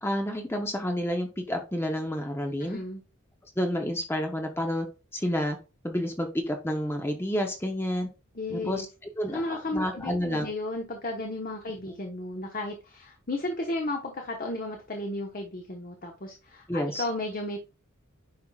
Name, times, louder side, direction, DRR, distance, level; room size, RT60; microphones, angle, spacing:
voice 1, 0.0-2.8 3.6-4.9 5.1-5.6 5.8-8.1 8.7-8.9 9.2-10.5 16.7-17.0, equal, 10° left, 3 dB, 0.8 m, -29 dB
voice 2, 2.6-3.0 8.3-8.8 9.3-17.6, left 2 dB, 40° left, 2 dB, 1.1 m, -34 dB
9.7 x 5.6 x 2.4 m, 0.31 s
head